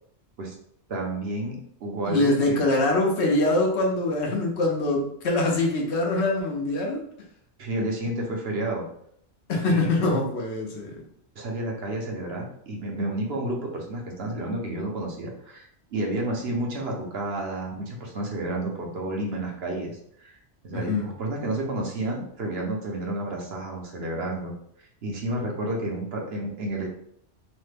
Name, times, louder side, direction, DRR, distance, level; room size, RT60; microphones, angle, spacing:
voice 1, 0.9-2.6 7.6-8.9 9.7-9.9 11.4-20.4 20.6-24.5 24.8-26.9, right 1 dB, 65° right, 0 dB, 0.9 m, -31 dB
voice 2, 2.0-7.0 9.5-11.0 20.7-21.1, left 2 dB, 75° left, 0 dB, 1.0 m, -24 dB
3.1 x 2.1 x 3.2 m, 0.67 s
omnidirectional pair, 1.2 m